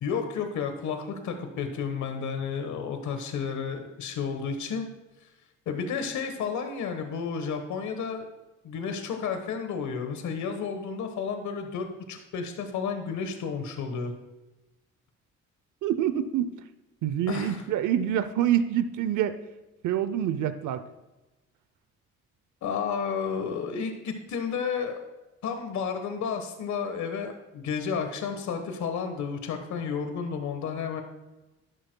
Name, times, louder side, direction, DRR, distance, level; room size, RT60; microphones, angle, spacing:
voice 1, 0.0-4.9 5.7-8.3 8.6-14.1 17.3-17.6 22.6-25.0 25.4-31.0, left 6 dB, 70° left, 6 dB, 1.3 m, -32 dB
voice 2, 15.8-16.5 17.0-19.4 19.8-20.8, right 10 dB, 80° right, 12 dB, 0.7 m, -26 dB
12.0 x 11.0 x 2.3 m, 1.0 s
cardioid pair, 90°, 30 cm